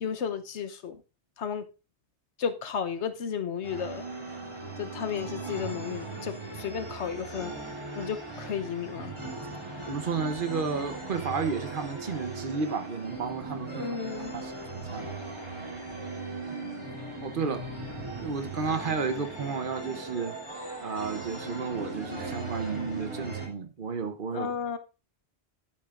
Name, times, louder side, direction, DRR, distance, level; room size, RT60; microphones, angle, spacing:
voice 1, 0.0-1.0 1.4-1.7 2.4-4.0 4.8-7.5 7.9-9.1 13.8-14.3 24.3-24.8, left 7 dB, 85° left, 1.2 m, -33 dB
sound 1, 3.6-23.5, right 3 dB, 25° right, 2.7 m, -38 dB
voice 2, 9.9-15.1 16.5-16.6 17.2-17.6 18.1-20.3 20.8-24.5, right 5 dB, 50° right, 1.0 m, -32 dB
11.5 x 8.8 x 2.5 m
omnidirectional pair, 1.1 m